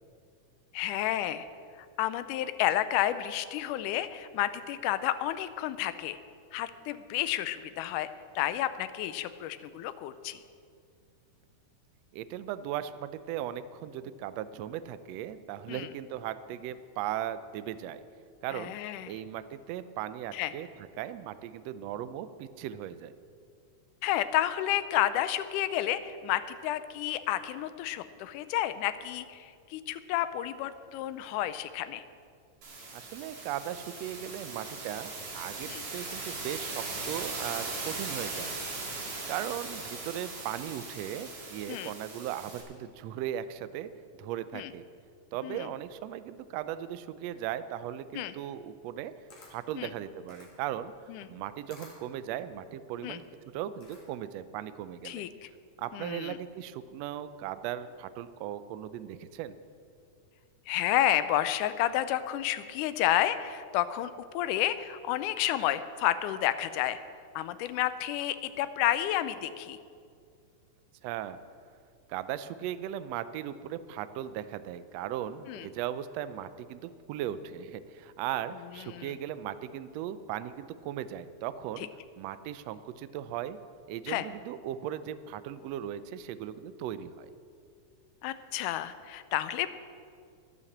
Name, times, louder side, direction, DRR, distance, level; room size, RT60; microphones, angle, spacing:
voice 1, 0.7-1.5 1.8-6.2 6.5-8.1 8.4-10.4 15.7-15.9 18.5-19.2 20.3-20.5 24.0-32.0 35.7-35.8 41.7-41.9 44.5-44.7 45.4-45.7 48.1-48.3 49.8-49.9 51.1-51.3 53.0-53.2 55.1-55.5 55.9-56.4 60.7-67.0 67.4-69.8 75.5-75.7 78.9-79.1 84.1-84.3 88.2-89.7, left 13 dB, 90° left, 12 dB, 2.1 m, -31 dB
voice 2, 12.1-18.0 18.4-18.7 19.1-20.7 21.0-23.1 32.9-38.5 39.3-43.9 44.2-44.8 45.3-49.1 49.5-50.9 51.3-55.2 55.8-59.6 71.0-71.4 72.1-81.9 82.2-83.6 83.9-87.3, right 11 dB, 80° right, 13 dB, 1.5 m, -37 dB
sound 1, 32.6-42.6, right 3 dB, 50° right, 3.1 m, -39 dB
Camera, 49.0-54.4, left 3 dB, 70° left, 3.6 m, -56 dB
11.5 x 11.0 x 7.2 m, 2.3 s
omnidirectional pair, 3.5 m